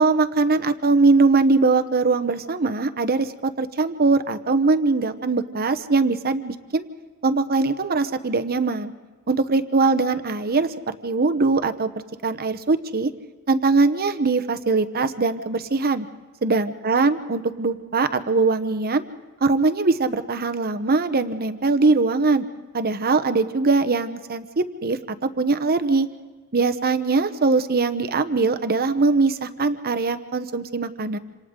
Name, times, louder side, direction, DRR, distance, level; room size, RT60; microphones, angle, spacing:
voice 1, 0.0-6.9 7.2-8.9 9.3-11.9 12.2-13.1 13.5-16.1 16.4-19.0 19.4-22.4 22.7-26.1 26.5-31.2, right 3 dB, 45° right, 10 dB, 1.0 m, -21 dB
27.5 x 27.0 x 3.8 m, 1.4 s
head